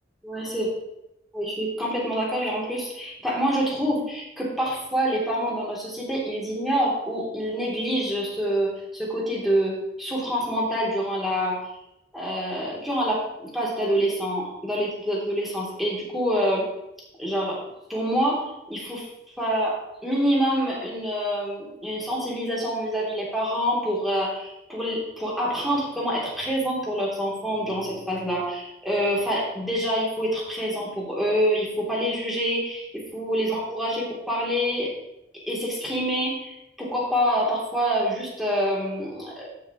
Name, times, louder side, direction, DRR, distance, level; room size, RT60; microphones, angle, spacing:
voice 1, 0.2-0.7 1.3-11.6 12.1-16.7 17.2-17.6 17.9-19.0 19.4-34.9 35.5-39.5, equal, ahead, -5 dB, 2.9 m, -26 dB
14.5 x 6.2 x 3.0 m, 0.86 s
head